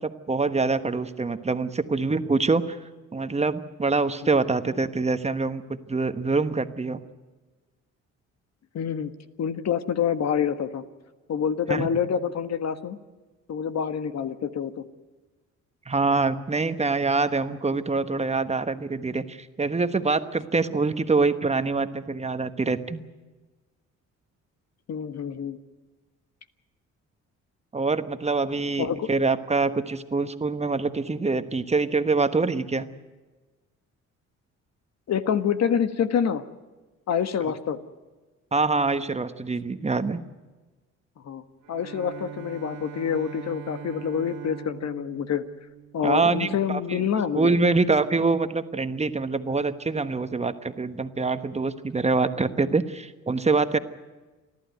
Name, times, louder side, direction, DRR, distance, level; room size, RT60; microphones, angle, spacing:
voice 1, 0.0-2.8 3.1-7.0 11.7-11.9 15.9-23.0 27.7-32.9 38.5-40.2 46.0-47.0 47.3-53.8, right 3 dB, 20° right, 10 dB, 1.2 m, -25 dB
voice 2, 8.7-9.1 9.4-10.8 11.3-13.0 13.5-14.8 24.9-25.6 28.8-29.1 35.1-36.4 37.1-37.8 41.2-45.4 45.9-47.5, left 8 dB, 60° left, 10 dB, 1.5 m, -27 dB
Bowed string instrument, 41.6-46.6, right 6 dB, 85° right, 1.5 m, -42 dB
29.5 x 12.0 x 9.3 m, 1.3 s
cardioid pair, 90°, 30 cm